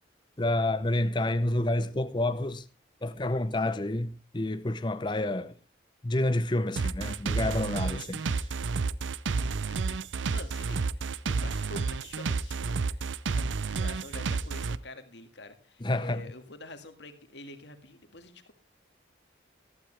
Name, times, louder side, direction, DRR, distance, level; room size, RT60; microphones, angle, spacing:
voice 1, 0.4-2.6 3.0-5.5 6.0-8.4 15.8-16.2, left 1 dB, 25° left, 0.6 m, -29 dB
sound 1, 6.8-14.8, right 4 dB, 90° right, 0.5 m, -30 dB
voice 2, 9.4-18.5, left 2 dB, 75° left, 1.9 m, -47 dB
15.0 x 12.5 x 3.3 m
head